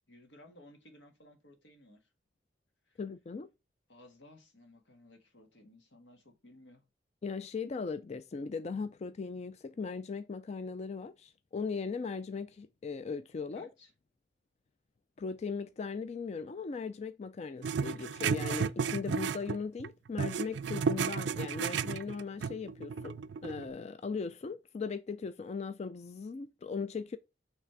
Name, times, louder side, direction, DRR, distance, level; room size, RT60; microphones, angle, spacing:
voice 1, 0.1-2.1 2.9-3.0 3.9-6.8 13.5-13.9, left 1 dB, 90° left, 1.7 m, -57 dB
voice 2, 3.0-3.5 7.2-13.7 15.2-23.2 23.4-27.2, left 5 dB, 35° left, 0.4 m, -38 dB
sound 1, 17.6-19.9 20.2-23.7, right 6 dB, 75° right, 0.4 m, -33 dB
6.0 x 3.3 x 5.8 m
head